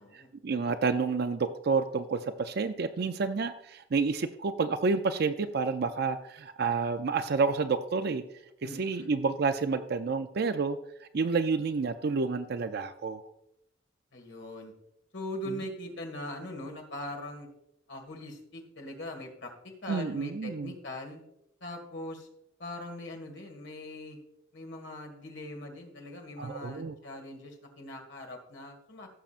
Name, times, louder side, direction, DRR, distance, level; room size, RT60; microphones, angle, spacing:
voice 1, 0.0-8.2 8.8-13.2 19.9-20.7 26.4-26.9, right 4 dB, 55° right, 10 dB, 0.5 m, -29 dB
voice 2, 8.6-9.1 14.1-14.7 15.1-17.5 17.9-21.2 21.6-22.3 22.6-24.2 24.5-29.1, left 1 dB, 65° left, 2 dB, 1.9 m, -41 dB
16.0 x 7.2 x 2.5 m, 0.78 s
head